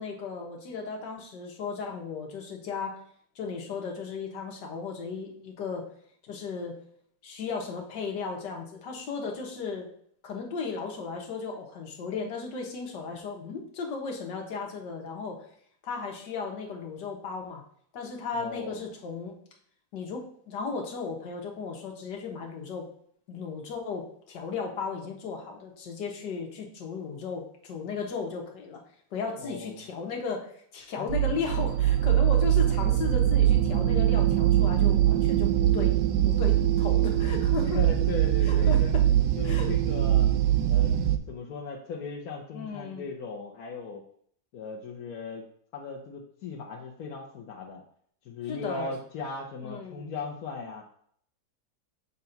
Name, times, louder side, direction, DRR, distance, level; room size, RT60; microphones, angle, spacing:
voice 1, 0.0-3.0 3.4-5.9 6.3-6.8 7.2-9.9 10.2-15.4 15.8-17.6 17.9-19.4 19.9-22.9 23.3-28.8 29.1-35.9 36.2-37.8 38.5-39.0 39.4-39.7 42.5-43.1 48.5-48.9 49.6-50.1, left 5 dB, 80° left, 1 dB, 1.8 m, -35 dB
voice 2, 18.3-18.8 29.4-29.8 31.0-31.1 37.7-38.9 39.4-40.3 40.7-40.9 41.3-44.0 44.5-45.4 45.7-47.8 48.2-50.8, left 4 dB, 65° left, -2 dB, 1.2 m, -38 dB
sound 1, 31.1-41.2, right 12 dB, 85° right, 1.2 m, -23 dB
6.9 x 2.6 x 5.6 m, 0.62 s
omnidirectional pair, 1.9 m